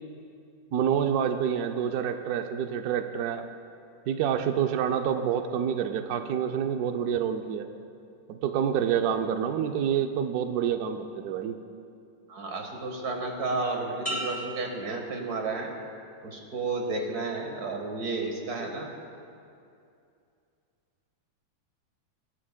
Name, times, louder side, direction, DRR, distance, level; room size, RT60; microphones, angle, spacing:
voice 1, 0.7-3.5 4.1-7.7 8.3-11.6, right 8 dB, 75° right, 6 dB, 0.9 m, -27 dB
voice 2, 12.3-15.7 16.2-18.9, right 3 dB, 55° right, 2 dB, 1.9 m, -32 dB
sound 1, 14.1-15.8 16.3-16.8, right 1 dB, 10° right, 1.0 m, -38 dB
22.5 x 12.0 x 2.2 m, 2.5 s
omnidirectional pair, 2.1 m